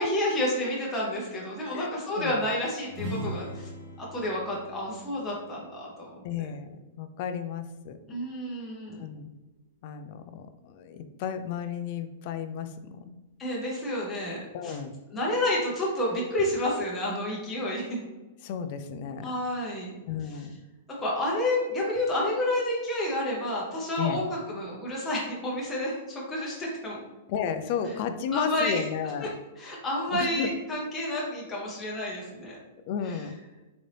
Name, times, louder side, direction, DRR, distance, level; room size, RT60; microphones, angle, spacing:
voice 1, 0.0-3.7 4.0-6.1 8.1-9.1 13.4-14.8 15.1-18.0 19.2-19.9 21.0-27.0 28.3-28.8 29.6-32.6 33.1-33.2, left 1 dB, 10° left, -5 dB, 0.7 m, -30 dB
voice 2, 1.6-2.5 6.2-8.0 9.0-9.3 9.8-13.1 14.5-15.0 18.4-19.4 20.1-20.5 24.0-24.2 27.3-29.3 30.1-30.5 32.8-33.3, left 7 dB, 40° left, 9 dB, 0.3 m, -33 dB
sound 1, 2.9-6.6, equal, 35° right, 1.3 m, -40 dB
4.0 x 2.6 x 3.2 m, 1.1 s
supercardioid pair, 165°, 0 cm